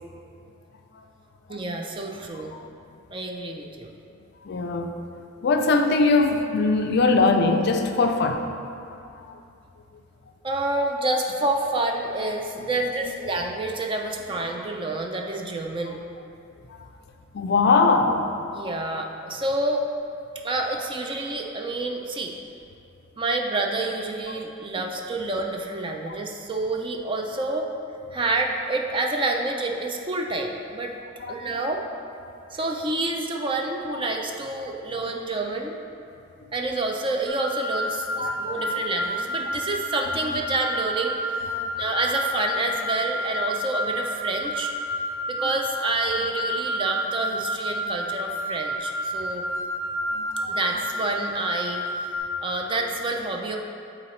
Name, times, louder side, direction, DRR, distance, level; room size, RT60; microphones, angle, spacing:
voice 1, 1.5-2.6 3.1-3.9 10.4-16.0 18.5-19.9 20.4-22.3 23.2-27.7 28.1-30.9 31.3-31.8 32.5-35.7 36.5-41.2 41.8-44.7 45.4-49.4 50.5-52.2 52.4-53.6, right 2 dB, 25° right, 2 dB, 0.4 m, -28 dB
voice 2, 4.4-5.0 5.4-8.5 9.0-9.3 12.6-12.7 14.5-14.6 17.3-18.3 24.3-24.4 26.1-26.2 31.2-31.4 32.2-32.3 33.9-34.0 38.2-38.8 39.5-39.6 41.5-41.6 50.1-50.5, left 3 dB, 55° left, 5 dB, 0.4 m, -22 dB
sound 1, 37.3-52.2, equal, 85° right, 1.0 m, -30 dB
8.6 x 3.9 x 3.1 m, 2.6 s
head